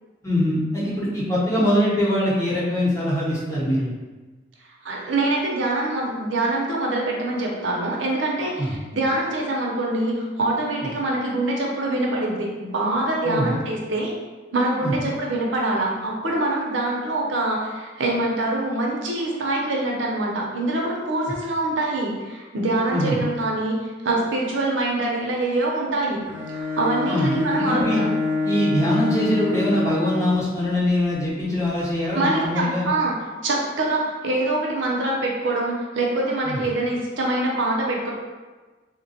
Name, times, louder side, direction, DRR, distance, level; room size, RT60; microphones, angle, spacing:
voice 1, 0.2-3.9 8.6-8.8 13.2-13.6 14.8-14.9 22.9-23.2 27.0-28.0 28.4-32.9 36.4-36.6, left 1 dB, 15° left, -8 dB, 0.8 m, -23 dB
voice 2, 4.8-14.1 14.5-26.2 26.5-28.1 32.1-33.1 33.4-38.1, right 2 dB, 80° right, -2 dB, 0.6 m, -24 dB
Bowed string instrument, 26.2-30.4, left 3 dB, 90° left, 1.0 m, -26 dB
3.4 x 2.2 x 2.7 m, 1.3 s
head